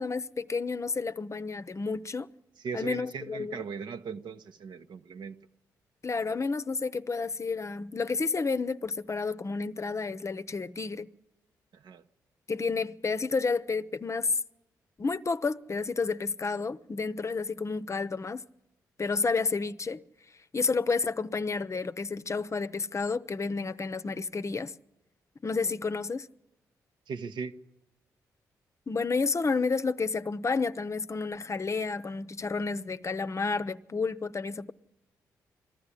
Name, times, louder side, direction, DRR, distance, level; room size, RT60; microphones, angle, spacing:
voice 1, 0.0-2.3 2.7-3.6 6.0-11.1 12.5-14.3 15.0-18.4 19.0-20.0 20.5-24.7 25.4-26.3 28.9-34.7, left 4 dB, 35° left, 0.7 m, -30 dB
voice 2, 2.6-5.3 11.8-12.0 27.1-27.5, right 5 dB, 70° right, 1.0 m, -38 dB
20.5 x 14.0 x 9.9 m
hypercardioid pair, 45°, 8 cm